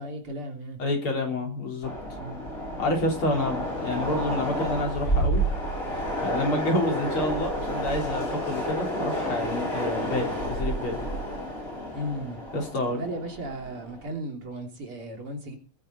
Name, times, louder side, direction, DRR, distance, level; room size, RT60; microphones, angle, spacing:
voice 1, 0.0-0.8 2.2-2.4 11.9-12.4 12.9-15.6, right 1 dB, 80° right, 2 dB, 4.0 m, -35 dB
voice 2, 0.8-1.9 2.8-5.4 6.2-11.1 12.5-13.0, left 1 dB, 75° left, 1 dB, 4.7 m, -28 dB
Train, 1.8-14.1, equal, 25° left, 7.2 m, -30 dB
20.0 x 10.0 x 4.1 m, 0.36 s
omnidirectional pair, 2.4 m